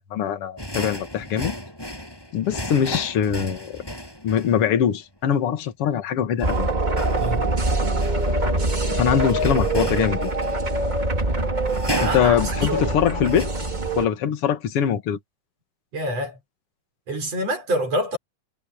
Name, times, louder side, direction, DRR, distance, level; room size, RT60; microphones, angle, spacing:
voice 1, 0.1-1.5 2.3-3.8 4.2-6.7 8.9-10.3 12.0-13.5 14.0-15.2, left 8 dB, 50° left, 2.1 m, -22 dB
sound 1, 0.6-4.6 6.4-10.8 11.7-12.5 13.1-13.5, equal, 5° left, 6.8 m, -34 dB
sound 2, 6.4-14.0, right 2 dB, 20° right, 1.5 m, -24 dB
voice 2, 7.2-7.5 11.9-13.0 15.9-16.4 17.1-18.2, right 1 dB, 45° right, 6.3 m, -27 dB
omnidirectional pair, 4.2 m